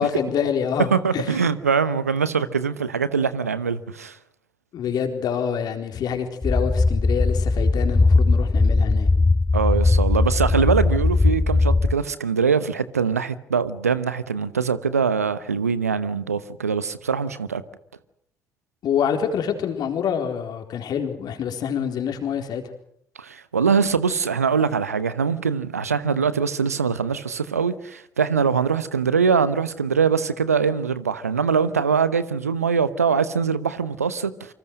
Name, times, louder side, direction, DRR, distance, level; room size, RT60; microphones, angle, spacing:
voice 1, 0.0-1.4 4.7-9.1 18.8-22.6, left 7 dB, 55° left, 4.1 m, -26 dB
voice 2, 0.9-4.2 9.5-17.6 23.2-34.5, right 6 dB, 90° right, 0.9 m, -23 dB
sound 1, 6.4-11.9, left 3 dB, 20° left, 1.3 m, -19 dB
27.5 x 25.5 x 6.4 m
figure-of-eight pair, 45°, 8 cm